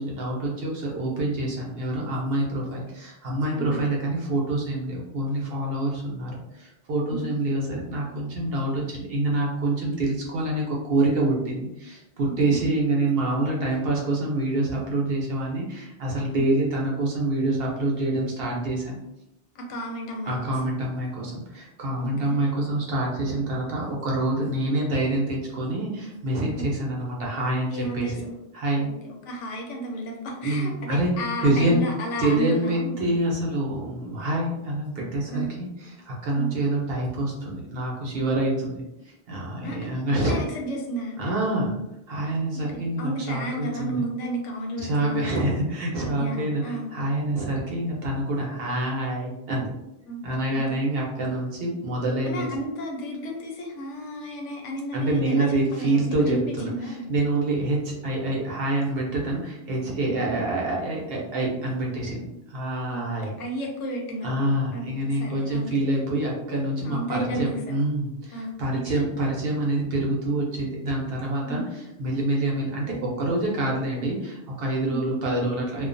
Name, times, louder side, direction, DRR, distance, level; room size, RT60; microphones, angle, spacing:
voice 1, 0.0-19.0 20.3-28.1 28.5-28.9 30.4-31.1 31.4-31.8 32.2-40.4 41.2-41.8 42.1-44.0 44.8-49.7 50.2-52.5 54.9-63.3 64.2-75.9, right 2 dB, 60° right, -2 dB, 0.8 m, -26 dB
voice 2, 12.2-12.6 16.3-16.4 19.5-20.5 22.0-22.4 26.5-26.6 27.7-28.3 28.8-33.1 35.3-35.5 36.3-36.5 39.6-39.8 40.2-41.4 42.5-45.6 46.2-46.9 50.0-50.2 50.5-50.8 52.3-57.1 62.9-64.9 65.2-65.7 66.8-67.8 68.3-68.8 71.4-71.7 74.8-75.0, right 1 dB, 90° left, 0 dB, 1.0 m, -33 dB
2.3 x 2.2 x 2.5 m, 0.89 s
omnidirectional pair, 1.2 m